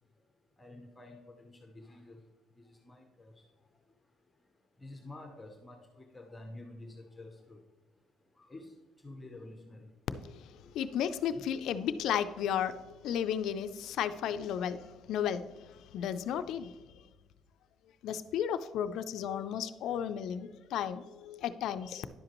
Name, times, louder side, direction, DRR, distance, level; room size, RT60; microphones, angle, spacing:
voice 1, 0.6-2.2 2.6-3.5 4.8-7.6 8.4-8.7 9.0-9.9 11.3-11.5, left 2 dB, 10° left, 4 dB, 0.6 m, -49 dB
voice 2, 10.2-15.4 15.9-16.7 18.0-22.1, left 9 dB, 60° left, 10 dB, 0.3 m, -34 dB
10.5 x 7.7 x 3.0 m, 1.2 s
cardioid pair, 175°, 0 cm